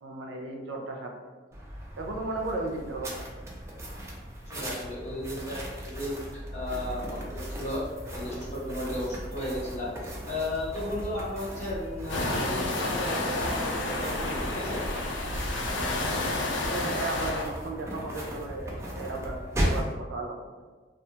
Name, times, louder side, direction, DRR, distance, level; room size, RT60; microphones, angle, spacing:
voice 1, 0.0-1.2 2.0-3.2 16.7-20.4, right 2 dB, 85° right, 1 dB, 0.4 m, -35 dB
sound 1, 1.5-19.9, equal, 15° right, 0.4 m, -37 dB
voice 2, 4.5-5.6 5.9-7.8 8.1-14.8, left 1 dB, 40° left, -5 dB, 0.7 m, -34 dB
sound 2, 12.1-17.4, left 2 dB, 85° left, 0.4 m, -30 dB
2.4 x 2.2 x 2.7 m, 1.3 s
head